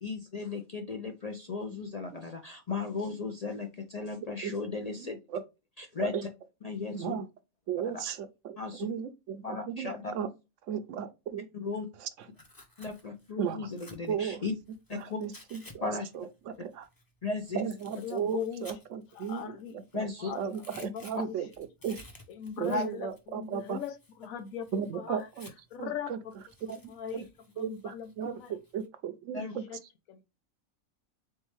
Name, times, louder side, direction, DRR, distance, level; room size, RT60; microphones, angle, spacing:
voice 1, 0.0-5.2 5.8-6.1 6.6-7.1 7.8-8.0 8.6-8.9 9.4-10.1 11.5-11.9 12.8-14.5 14.9-15.2 15.8-16.1 17.2-17.6 19.9-20.3 21.1-21.2 22.7-22.8 29.3-29.5, left 4 dB, 55° left, 0.4 m, -35 dB
voice 2, 5.0-5.4 6.0-6.2 6.9-7.3 7.7-10.3 10.7-11.4 12.0-12.1 13.4-13.7 14.1-14.4 14.9-15.9 16.1-16.9 17.5-20.0 20.3-22.0 22.6-23.8 24.7-25.5 25.8-26.2 26.7-26.8 27.1-27.2 27.6-29.6, right 8 dB, 70° right, 0.9 m, -35 dB
Tearing, 12.2-15.7 16.0-20.0 20.3-25.8 26.3-28.9, left 1 dB, 20° left, 0.8 m, -55 dB
voice 3, 17.9-18.7 19.1-19.8 20.2-20.4 20.7-21.4 22.3-25.3 25.7-26.3 26.9-27.2 27.6-28.5 29.4-29.8 30.1-30.2, left 8 dB, 90° left, 1.2 m, -40 dB
4.0 x 3.5 x 3.1 m
omnidirectional pair, 1.4 m